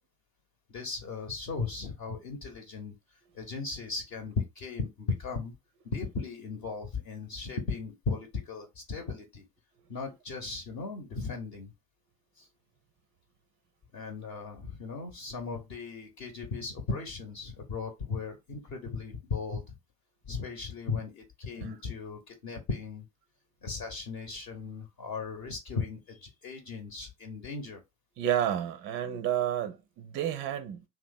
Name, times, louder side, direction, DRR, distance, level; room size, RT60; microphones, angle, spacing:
voice 1, 0.7-2.9 3.3-5.5 5.8-9.4 9.9-11.7 12.4-12.5 13.9-19.8 20.2-23.0 23.6-27.8, left 4 dB, 45° left, 0.9 m, -37 dB
voice 2, 28.2-30.8, right 10 dB, 30° right, 0.4 m, -30 dB
2.8 x 2.1 x 3.8 m
figure-of-eight pair, 75°, 43 cm